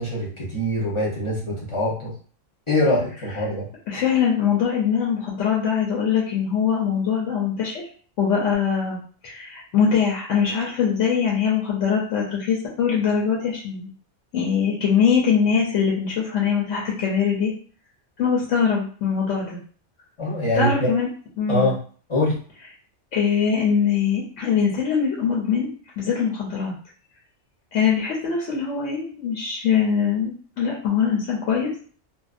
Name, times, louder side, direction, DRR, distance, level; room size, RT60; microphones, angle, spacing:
voice 1, 0.0-2.1 2.7-3.7 20.2-20.9 21.5-21.8 22.1-22.4, left 1 dB, 30° left, -4 dB, 0.7 m, -23 dB
voice 2, 3.9-7.8 8.2-13.9 14.3-17.5 18.2-19.6 20.5-21.1 21.4-21.7 23.1-25.7 26.0-26.7 27.7-31.7, left 7 dB, 80° left, -3 dB, 1.0 m, -22 dB
2.5 x 2.1 x 2.4 m, 0.43 s
omnidirectional pair, 1.3 m